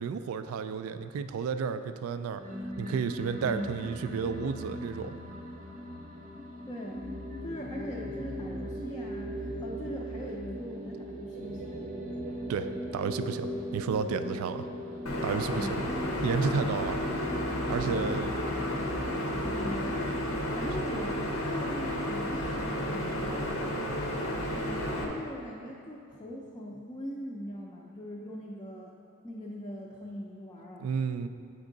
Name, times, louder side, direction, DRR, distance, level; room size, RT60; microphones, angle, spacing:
voice 1, 0.0-2.4 2.8-5.2 12.5-12.7 12.9-14.7 15.2-15.7 16.2-17.0 17.7-18.4 30.8-31.3, right 6 dB, 85° right, 12 dB, 0.3 m, -32 dB
sound 1, 2.4-21.0, equal, 35° right, 0.6 m, -39 dB
voice 2, 3.4-3.7 6.7-7.0 7.4-11.8 15.6-15.9 18.4-18.6 19.4-24.0 24.5-28.9 29.2-30.9, equal, 20° left, -4 dB, 0.4 m, -41 dB
sound 2, 15.1-25.1, left 1 dB, 90° left, 0.7 m, -32 dB
8.2 x 3.6 x 3.8 m, 2.4 s
head